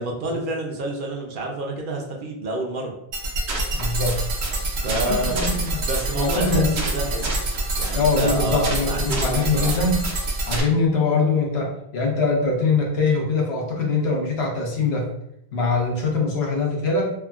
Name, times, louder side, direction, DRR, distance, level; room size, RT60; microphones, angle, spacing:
voice 1, 0.0-2.9 4.8-7.3 7.8-9.7, right 2 dB, 60° right, 1 dB, 0.7 m, -28 dB
sound 1, 3.1-10.6, right 2 dB, 85° right, 0.9 m, -26 dB
voice 2, 3.7-4.2 5.0-5.8 6.1-6.8 7.9-10.0 10.5-15.1 15.5-17.1, left 3 dB, 80° left, -1 dB, 1.0 m, -22 dB
3.4 x 2.1 x 2.3 m, 0.77 s
omnidirectional pair, 1.1 m